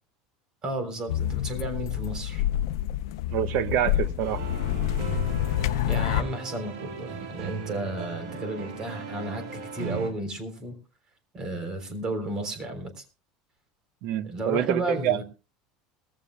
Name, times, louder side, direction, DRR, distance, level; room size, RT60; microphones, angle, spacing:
voice 1, 0.6-2.4 5.8-10.8 11.3-13.0 14.2-15.2, right 1 dB, 30° right, 3.5 m, -33 dB
sound 1, 1.1-6.2, left 12 dB, 90° left, 0.6 m, -27 dB
voice 2, 3.3-4.4 14.0-15.2, right 10 dB, 60° right, 1.1 m, -26 dB
sound 2, 4.2-10.1, right 6 dB, 90° right, 3.7 m, -37 dB
21.5 x 15.0 x 2.2 m
supercardioid pair, 145°, 2 cm